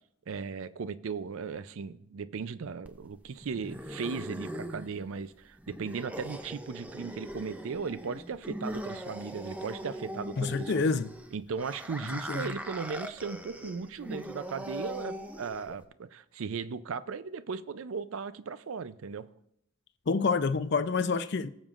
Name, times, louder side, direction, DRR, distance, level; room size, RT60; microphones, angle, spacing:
voice 1, 0.3-10.8 11.3-19.3, right 5 dB, 70° right, 0.4 m, -37 dB
sound 1, 2.8-15.8, equal, 5° right, 0.4 m, -41 dB
voice 2, 10.4-11.2 12.1-12.4 20.1-21.5, left 4 dB, 50° left, 0.5 m, -28 dB
19.0 x 7.3 x 2.5 m
head